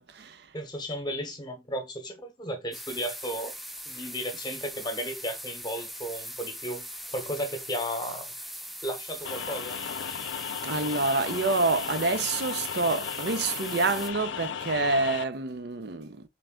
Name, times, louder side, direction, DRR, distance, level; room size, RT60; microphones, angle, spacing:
voice 1, 0.0-0.5 10.6-16.3, right 3 dB, 65° right, 0.6 m, -27 dB
voice 2, 0.5-3.5 3.9-6.9 7.1-8.3 8.8-9.8, equal, 25° left, 1.0 m, -34 dB
sound 1, 2.7-14.1, equal, ahead, 0.4 m, -40 dB
sound 2, 9.2-15.2, left 8 dB, 85° left, 0.4 m, -35 dB
3.8 x 3.4 x 3.7 m
head